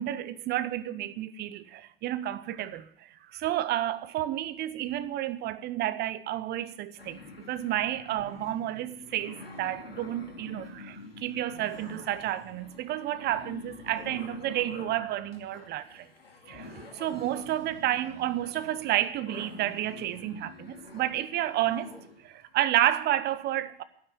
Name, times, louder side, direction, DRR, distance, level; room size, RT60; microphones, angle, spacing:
voice 1, 0.0-16.1 16.5-21.9 22.2-23.8, right 13 dB, 35° right, 0.9 m, -31 dB
sound 1, 7.0-22.3, left 3 dB, 85° left, 2.5 m, -47 dB
12.0 x 9.7 x 9.6 m
figure-of-eight pair, 90°, 29 cm